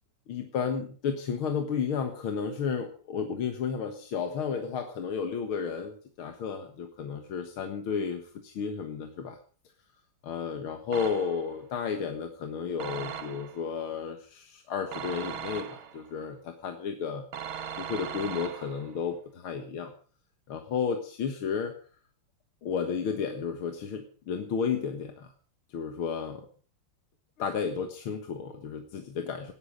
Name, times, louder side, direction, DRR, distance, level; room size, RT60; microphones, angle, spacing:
voice 1, 0.3-9.4 10.2-17.3 17.8-19.9 20.5-21.7 22.6-25.3 25.7-26.5 27.4-29.5, left 6 dB, 75° left, 5 dB, 2.3 m, -32 dB
sound 1, 10.9-11.6 12.8-13.7 14.9-16.1 17.3-19.0, right 8 dB, 70° right, 2.0 m, -39 dB
18.5 x 12.0 x 5.2 m, 0.42 s
omnidirectional pair, 2.4 m